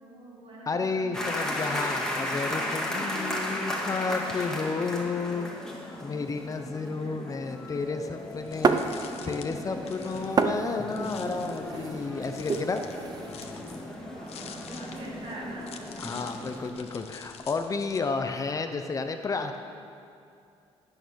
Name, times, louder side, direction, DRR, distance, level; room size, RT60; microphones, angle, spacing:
voice 1, 0.0-1.6 2.9-3.6 6.9-7.3 11.7-11.9 14.2-15.8 16.5-17.0, right 2 dB, 55° right, -5 dB, 4.3 m, -45 dB
voice 2, 0.7-5.5 6.0-12.8 16.0-19.6, left 4 dB, 30° left, 7 dB, 0.8 m, -32 dB
sound 1, 1.1-16.7, left 1 dB, 5° left, 2.2 m, -35 dB
sound 2, 8.3-18.0, left 7 dB, 70° left, 1.1 m, -48 dB
sound 3, 8.6-9.5 9.8-13.5, right 5 dB, 35° right, 0.8 m, -29 dB
18.5 x 8.8 x 6.4 m, 2.5 s
cardioid pair, 120°, 11 cm